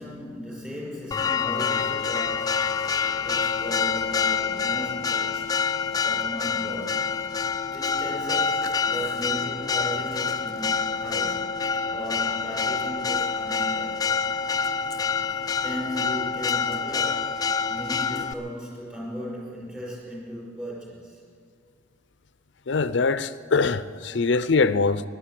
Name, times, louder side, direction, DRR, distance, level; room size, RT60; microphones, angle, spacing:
voice 1, 0.0-5.6 6.0-7.2 7.6-11.4 11.9-14.2 15.6-21.2, equal, 10° right, 5.6 m, -36 dB
Church bell, 1.1-18.3, left 5 dB, 20° left, 0.4 m, -27 dB
voice 2, 22.7-25.0, left 4 dB, 75° left, 0.6 m, -23 dB
16.0 x 11.5 x 7.7 m
head